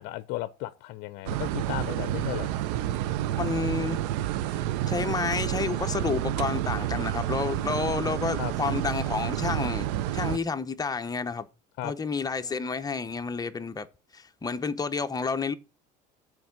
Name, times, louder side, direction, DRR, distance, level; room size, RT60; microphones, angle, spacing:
voice 1, 0.0-2.5 8.4-8.5 11.8-11.9, left 15 dB, 70° left, 0.6 m, -35 dB
sound 1, 1.3-10.4, right 13 dB, 85° right, 0.6 m, -29 dB
voice 2, 3.4-4.0 4.5-9.9 10.1-11.5 11.8-13.9 14.1-15.5, left 5 dB, 20° left, 0.8 m, -30 dB
7.7 x 4.6 x 7.1 m
supercardioid pair, 95°, 20 cm